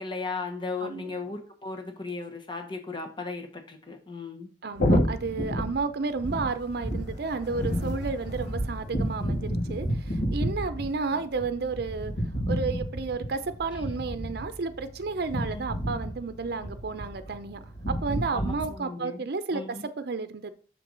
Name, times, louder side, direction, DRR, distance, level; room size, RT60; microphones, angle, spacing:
voice 1, 0.0-4.5 13.7-13.8 15.5-15.6 18.3-19.9, left 3 dB, 25° left, 4 dB, 1.2 m, -36 dB
voice 2, 0.8-1.1 4.6-12.1 12.5-20.5, right 4 dB, 60° right, 10 dB, 0.6 m, -32 dB
sound 1, 4.7-18.6, equal, 70° left, 2.9 m, -30 dB
6.7 x 4.6 x 3.9 m, 0.41 s
head